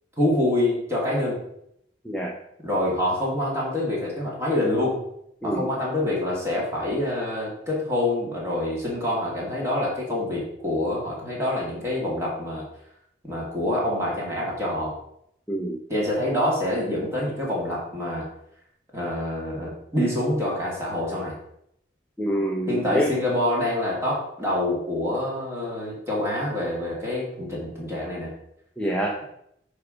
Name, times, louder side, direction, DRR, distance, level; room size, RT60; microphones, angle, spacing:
voice 1, 0.2-1.4 2.6-5.0 5.4-12.6 13.2-15.0 15.9-18.3 18.9-21.4 22.7-28.3, left 1 dB, 15° right, -5 dB, 2.5 m, -26 dB
voice 2, 22.2-23.1 28.8-29.1, right 1 dB, 5° left, -2 dB, 0.7 m, -26 dB
10.0 x 3.5 x 5.1 m, 0.75 s
head